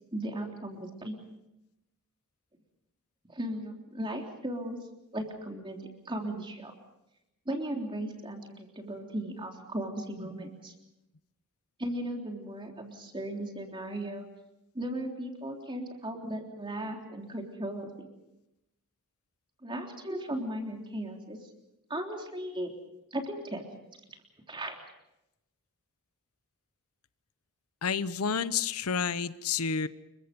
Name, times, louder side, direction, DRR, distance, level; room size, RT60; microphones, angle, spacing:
voice 1, 0.1-1.2 3.2-4.8 5.1-6.7 7.5-10.7 11.8-14.2 14.7-18.1 19.6-21.4 21.9-22.7 23.1-23.6 24.5-24.8, right 1 dB, 20° right, 2 dB, 3.6 m, -36 dB
voice 2, 27.8-29.9, left 6 dB, 80° left, 14 dB, 0.9 m, -30 dB
28.5 x 23.5 x 5.3 m, 0.89 s
head